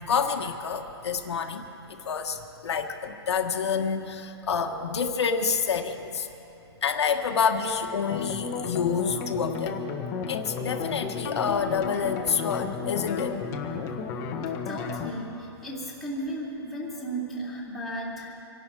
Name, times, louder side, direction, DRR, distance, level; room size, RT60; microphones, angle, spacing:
voice 1, 0.0-1.6 1.9-2.4 2.6-6.3 6.8-9.7 10.3-13.4, left 6 dB, 80° left, 4 dB, 1.5 m, -28 dB
sound 1, 8.1-15.1, left 5 dB, 20° left, 1.2 m, -33 dB
voice 2, 14.7-18.3, right 1 dB, ahead, -6 dB, 2.9 m, -35 dB
26.5 x 11.5 x 4.8 m, 2.9 s
hypercardioid pair, 165°, 14 cm